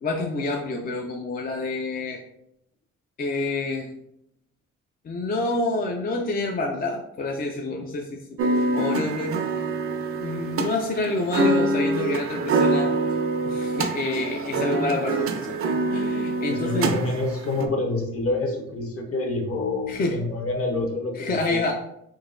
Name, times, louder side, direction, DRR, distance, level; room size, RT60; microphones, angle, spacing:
voice 1, 0.0-2.2 3.2-3.9 5.0-8.4 8.7-9.4 10.2-12.9 13.5-15.6 15.9-17.0 19.9-20.2 21.2-21.7, left 2 dB, 30° left, 2 dB, 0.4 m, -28 dB
sound 1, 8.4-17.7, right 2 dB, 50° right, 0.5 m, -25 dB
voice 2, 16.5-21.7, left 2 dB, 50° left, 2 dB, 0.9 m, -27 dB
3.8 x 2.8 x 2.5 m, 0.78 s
cardioid pair, 90°, 30 cm